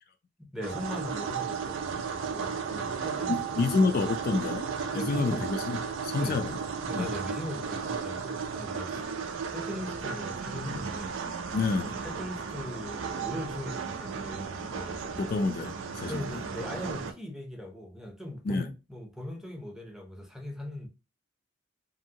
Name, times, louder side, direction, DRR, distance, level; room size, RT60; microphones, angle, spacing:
voice 1, 0.4-4.4 4.9-5.5 6.2-6.4 6.9-8.9 9.5-11.2 11.8-15.5 16.1-20.9, left 1 dB, 5° right, 0.6 m, -40 dB
sound 1, 0.6-17.1, right 6 dB, 85° right, 0.4 m, -35 dB
voice 2, 3.3-4.7 4.9-6.6 7.0-7.1 8.9-9.0 11.5-12.0 15.2-16.4 18.5-18.7, left 3 dB, 50° left, 0.3 m, -29 dB
2.8 x 2.6 x 2.7 m
head